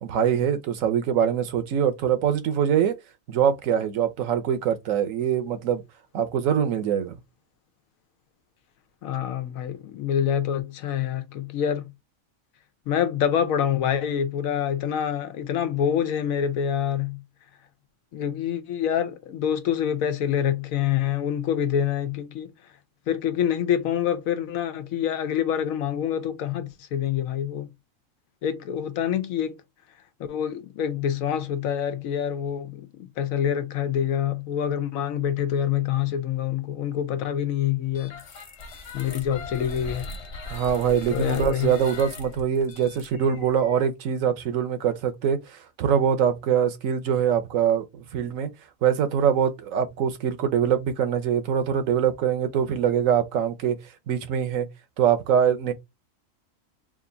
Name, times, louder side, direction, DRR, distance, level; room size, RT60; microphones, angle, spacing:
voice 1, 0.0-2.9 3.3-5.8 6.1-7.2 40.5-48.5 48.8-53.8 54.1-54.7 55.0-55.7, right 8 dB, 75° right, 1.1 m, -23 dB
voice 2, 9.0-11.9 12.9-17.2 18.1-22.5 23.1-27.7 28.4-29.6 30.3-38.2 38.9-40.1 41.1-41.7, left 9 dB, 90° left, 1.1 m, -26 dB
sound 1, 37.9-43.8, left 3 dB, 60° left, 1.3 m, -39 dB
3.5 x 2.5 x 3.8 m
omnidirectional pair, 1.4 m